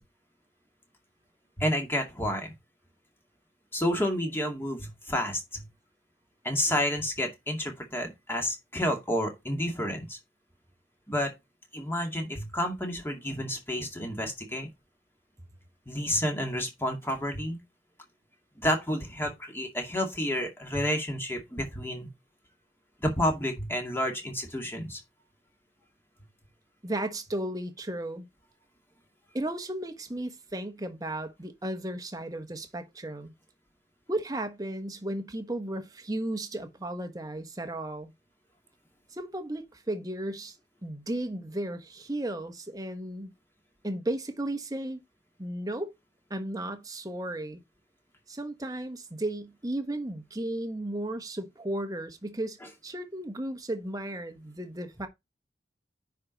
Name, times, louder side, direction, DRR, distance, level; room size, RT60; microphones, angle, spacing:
voice 1, 1.6-2.5 3.7-5.7 6.4-10.2 11.1-11.3 11.7-14.7 15.9-17.6 18.6-22.1 23.0-25.0, equal, 15° left, 2.3 m, -30 dB
voice 2, 26.8-28.3 29.3-33.3 34.1-38.1 39.1-40.6 40.8-43.3 43.8-45.0 45.4-45.9 46.3-47.6 48.3-52.6 52.8-55.1, right 1 dB, 20° right, 1.2 m, -34 dB
9.7 x 4.7 x 4.0 m
head